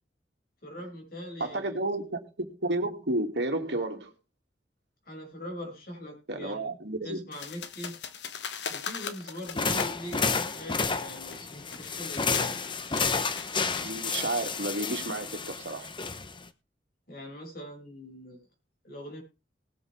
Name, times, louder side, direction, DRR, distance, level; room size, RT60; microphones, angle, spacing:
voice 1, 0.6-1.8 5.0-6.7 7.0-7.9 8.7-12.6 17.1-18.4 18.8-19.2, left 1 dB, 60° left, 6.5 m, -42 dB
voice 2, 1.4-4.1 6.3-7.2 13.8-15.9, right 2 dB, 70° right, 2.5 m, -31 dB
sound 1, 7.3-14.6, left 6 dB, 80° left, 1.3 m, -41 dB
sound 2, 9.5-16.5, left 4 dB, 30° left, 0.9 m, -31 dB
19.5 x 7.7 x 3.6 m
head